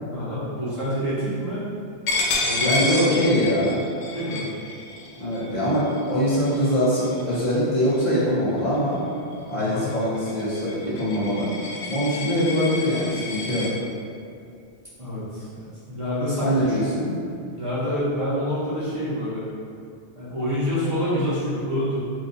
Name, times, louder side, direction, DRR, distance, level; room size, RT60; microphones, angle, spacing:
voice 1, 0.1-1.7 2.4-3.1 4.1-4.5 9.5-9.9 15.0-16.8 17.5-19.4 20.1-22.0, equal, 30° right, -12 dB, 0.8 m, -27 dB
Coin (dropping), 2.1-7.5 7.9-8.2 8.6-13.7, left 2 dB, 80° left, 0.9 m, -30 dB
voice 2, 2.6-3.9 5.2-9.0 9.5-11.5 11.9-13.7 16.4-17.1, equal, 45° left, -10 dB, 1.0 m, -23 dB
2.9 x 2.6 x 3.8 m, 2.4 s
omnidirectional pair, 1.1 m